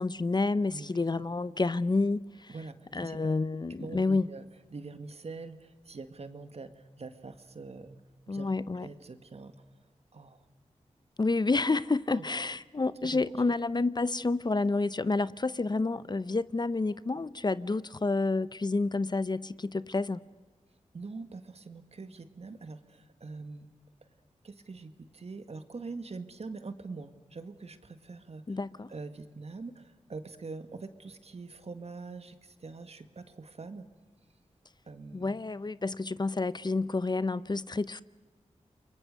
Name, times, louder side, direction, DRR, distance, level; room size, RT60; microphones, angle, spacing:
voice 1, 0.0-2.5 2.9-4.3 8.3-8.9 11.2-20.2 28.5-28.9 35.1-38.0, left 3 dB, 35° left, 0.7 m, -29 dB
voice 2, 0.7-1.0 2.5-3.3 3.8-4.4 4.7-8.0 8.3-8.5 8.7-9.5 10.1-10.4 12.1-12.2 13.0-13.2 20.9-23.7 24.4-28.6 28.9-33.9 34.9-35.3, right 3 dB, 60° right, 1.9 m, -44 dB
30.0 x 23.0 x 6.7 m
cardioid pair, 60°, 12 cm